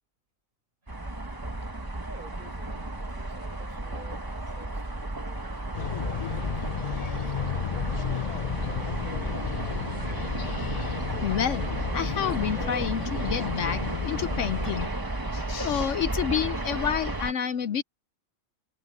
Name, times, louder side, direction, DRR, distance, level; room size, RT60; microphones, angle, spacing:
sound 1, 0.9-17.3, right 2 dB, 15° right, 1.2 m, -33 dB
voice 1, 2.0-7.3 7.9-10.2 10.5-10.6 11.3-11.4, right 2 dB, 35° right, 6.0 m, -50 dB
sound 2, 5.7-14.9, left 8 dB, 50° left, 0.5 m, -33 dB
voice 2, 11.2-14.9 15.3-17.8, left 8 dB, 70° left, 1.0 m, -29 dB
omnidirectional pair, 1.4 m